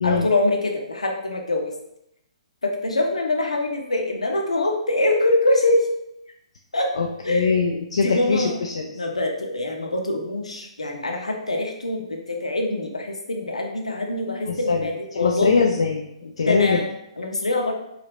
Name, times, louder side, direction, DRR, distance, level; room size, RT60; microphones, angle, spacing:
voice 1, 0.0-1.7 2.6-5.9 6.7-6.9 7.2-7.6 7.9-8.6 8.9-15.6 16.4-17.7, left 2 dB, 80° left, 2 dB, 0.8 m, -24 dB
voice 2, 6.9-8.9 14.5-16.8, left 5 dB, 65° left, 1 dB, 0.4 m, -23 dB
4.9 x 2.8 x 3.0 m, 0.81 s
figure-of-eight pair, 125°, 3 cm